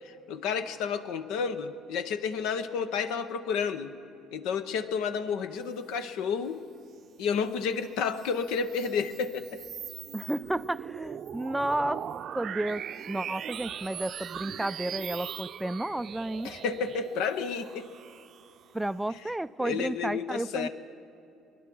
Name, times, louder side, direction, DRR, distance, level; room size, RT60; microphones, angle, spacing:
voice 1, 0.0-3.9 4.3-6.6 7.2-9.6 16.4-17.9 19.6-20.7, left 6 dB, 70° left, 10 dB, 0.8 m, -31 dB
sound 1, 8.0-18.9, right 9 dB, 55° right, 0.6 m, -40 dB
voice 2, 10.1-12.0 12.4-12.8 13.1-16.5 18.7-20.7, right 1 dB, 10° right, 15 dB, 0.4 m, -32 dB
21.0 x 10.0 x 6.2 m, 2.8 s
hypercardioid pair, 60°, 0 cm